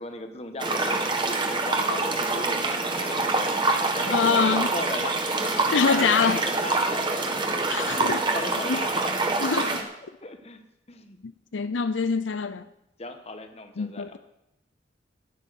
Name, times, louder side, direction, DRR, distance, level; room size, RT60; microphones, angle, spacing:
voice 1, 0.0-2.6 3.0-3.5 3.9-7.6 7.9-9.1 9.6-9.7 10.2-10.6 10.9-11.2 13.0-14.2, left 2 dB, 35° left, 1.4 m, -37 dB
sound 1, 0.6-9.8, right 3 dB, 25° right, 1.6 m, -26 dB
voice 2, 4.1-4.7 5.7-6.4 7.7-8.2 8.7-8.8 9.4-9.7 11.5-12.6 13.8-14.2, left 5 dB, 90° left, 0.6 m, -24 dB
14.0 x 10.5 x 6.4 m
head